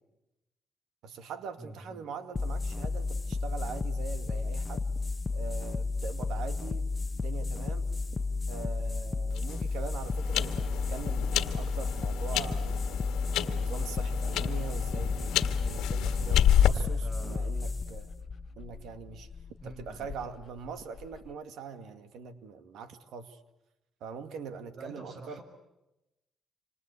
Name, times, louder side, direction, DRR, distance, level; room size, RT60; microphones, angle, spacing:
voice 1, 1.0-4.9 5.3-7.9 8.5-12.9 13.4-18.1 18.6-19.3 19.6-23.4 24.0-25.4, right 5 dB, 85° right, 9 dB, 2.1 m, -42 dB
voice 2, 1.6-2.0 16.7-17.5 19.6-20.1 24.8-25.4, right 2 dB, 55° right, 7 dB, 7.2 m, -47 dB
sound 1, 2.3-19.4, left 3 dB, 30° left, 1.0 m, -33 dB
sound 2, 9.3-16.7, left 11 dB, 90° left, 1.5 m, -30 dB
Dog, 14.3-21.3, left 7 dB, 55° left, 0.9 m, -43 dB
27.0 x 26.5 x 8.4 m, 0.96 s
cardioid pair, 90°, 0 cm